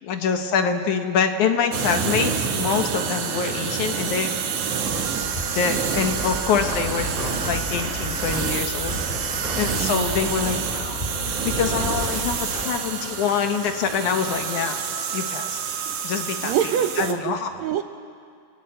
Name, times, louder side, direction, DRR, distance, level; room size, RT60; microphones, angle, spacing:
voice 1, 0.0-4.3 5.5-7.1 7.4-9.0 9.6-14.8 15.1-15.6 16.0-16.5 17.0-17.5, left 6 dB, 70° left, 6 dB, 2.7 m, -25 dB
sound 1, 1.7-17.1, right 6 dB, 55° right, 2.2 m, -28 dB
sound 2, 4.8-12.6, equal, 15° left, 5.4 m, -32 dB
voice 2, 16.4-17.8, right 10 dB, 75° right, 8 dB, 1.7 m, -25 dB
29.5 x 18.5 x 9.2 m, 2.3 s
omnidirectional pair, 3.8 m